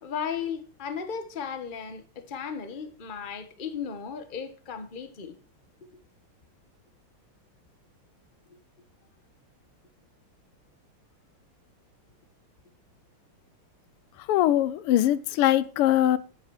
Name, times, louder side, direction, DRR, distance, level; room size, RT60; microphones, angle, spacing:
voice 1, 0.0-5.3 8.5-8.6, left 7 dB, 30° left, 1.1 m, -35 dB
voice 2, 14.3-16.2, left 12 dB, 85° left, 1.6 m, -22 dB
10.5 x 9.8 x 4.7 m
omnidirectional pair, 2.4 m